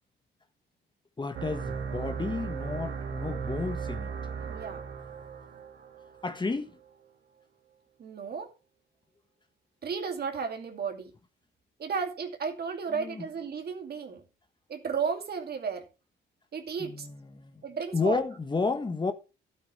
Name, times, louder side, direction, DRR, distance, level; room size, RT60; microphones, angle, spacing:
voice 1, 1.2-4.1 6.2-6.8 12.9-13.2 16.8-17.6 17.9-19.1, left 3 dB, 25° left, 1.4 m, -32 dB
sound 1, 1.3-6.6, right 6 dB, 75° right, 2.9 m, -36 dB
voice 2, 4.4-4.9 8.0-8.5 9.8-11.1 11.8-14.2 14.7-15.8 16.5-17.1 17.6-18.2, right 6 dB, 50° right, 2.5 m, -33 dB
12.5 x 9.1 x 3.2 m
cardioid pair, 90°, 20 cm